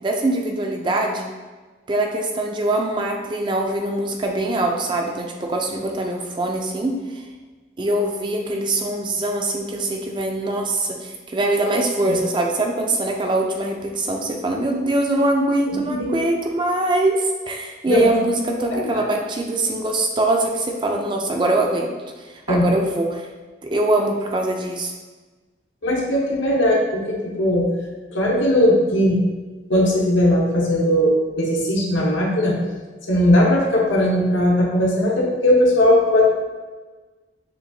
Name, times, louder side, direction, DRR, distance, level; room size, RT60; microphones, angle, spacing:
voice 1, 0.0-1.3 1.9-7.2 7.8-21.9 22.2-23.3 23.6-24.9, right 2 dB, 25° right, 2 dB, 0.3 m, -23 dB
voice 2, 15.7-16.2 17.9-18.1 18.7-19.0 22.5-22.7 25.8-27.7 28.1-29.2 29.7-32.6 33.1-36.2, left 1 dB, 85° left, -3 dB, 1.0 m, -18 dB
6.7 x 2.5 x 2.7 m, 1.3 s
head